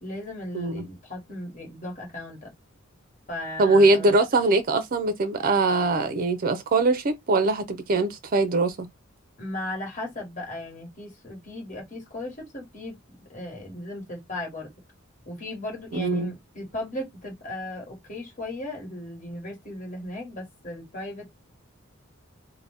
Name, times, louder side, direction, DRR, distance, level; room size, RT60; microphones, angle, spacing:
voice 1, 0.0-2.5 3.3-4.1 9.4-13.0 13.3-14.7 15.2-21.3, left 1 dB, 40° left, 1.3 m, -36 dB
voice 2, 3.6-8.9 15.9-16.3, right 2 dB, 45° right, 0.4 m, -22 dB
2.6 x 2.1 x 3.3 m
head